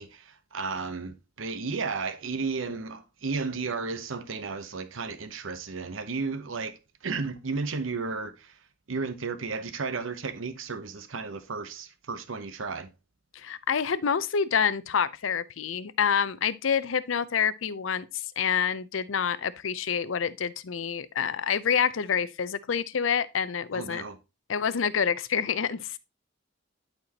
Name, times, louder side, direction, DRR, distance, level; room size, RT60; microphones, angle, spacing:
voice 1, 0.0-8.5 8.9-12.9 23.7-24.2, right 4 dB, 80° right, 0.8 m, -33 dB
voice 2, 13.3-18.1 18.4-24.0 24.5-26.0, left 7 dB, 75° left, 0.6 m, -27 dB
11.5 x 4.4 x 2.9 m
head